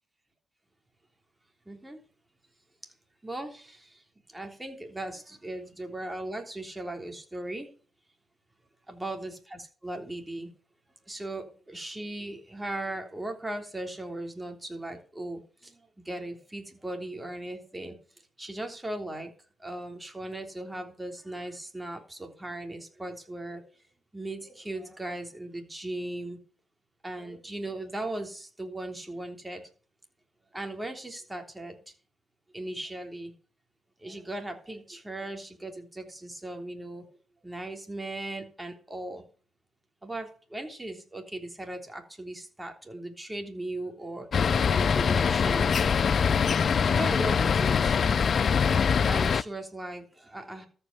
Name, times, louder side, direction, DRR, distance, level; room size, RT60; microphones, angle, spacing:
voice 1, 1.7-2.0 3.2-3.9 4.3-7.7 8.9-10.5 11.1-15.8 16.0-18.0 18.4-19.3 19.6-23.6 24.1-26.4 27.0-29.6 30.5-31.8 32.5-33.3 34.0-37.0 37.4-39.2 40.0-44.3 44.7-45.8 46.6-47.9 49.1-50.7, right 1 dB, 10° right, 4 dB, 3.3 m, -38 dB
sound 1, 44.3-49.4, left 6 dB, 50° left, 0.5 m, -23 dB
13.5 x 5.6 x 6.9 m, 0.40 s
cardioid pair, 90°, 0 cm